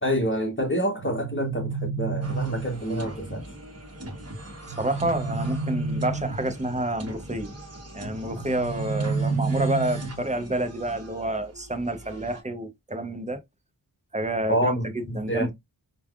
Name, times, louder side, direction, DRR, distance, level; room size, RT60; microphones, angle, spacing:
voice 1, 0.0-3.5 14.5-15.5, equal, 25° left, 0.8 m, -27 dB
sound 1, 1.0-3.0 4.7-6.6 8.4-10.3, right 4 dB, 70° right, 0.5 m, -30 dB
sound 2, 2.2-12.4, right 1 dB, 35° right, 0.9 m, -41 dB
voice 2, 4.8-7.5 7.9-13.4 14.1-15.5, right 1 dB, 15° right, 0.6 m, -29 dB
3.3 x 2.2 x 2.3 m
wide cardioid pair, 55°, 45 cm